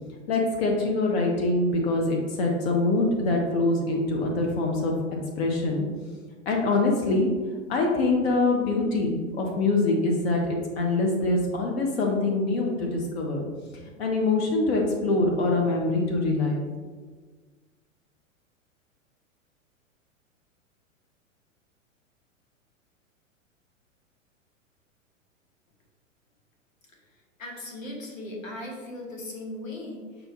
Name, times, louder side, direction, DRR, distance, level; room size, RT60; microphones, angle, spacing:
voice 1, 0.3-4.9 5.4-5.8 6.5-7.3 7.7-13.4 14.0-16.6, left 2 dB, 50° left, 1 dB, 0.7 m, -24 dB
voice 2, 27.4-30.3, left 1 dB, 75° left, 0 dB, 1.0 m, -38 dB
5.4 x 2.2 x 2.8 m, 1.4 s
figure-of-eight pair, 100°, 40 cm